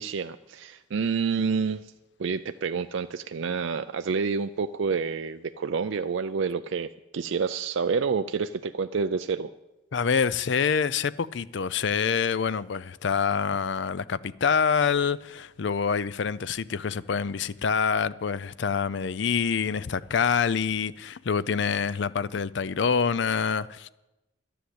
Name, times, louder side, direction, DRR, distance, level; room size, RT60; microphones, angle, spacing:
voice 1, 0.0-1.9 2.2-9.5, right 5 dB, 65° right, 0.4 m, -28 dB
voice 2, 9.9-23.9, left 6 dB, 60° left, 0.4 m, -26 dB
11.5 x 10.0 x 7.9 m
head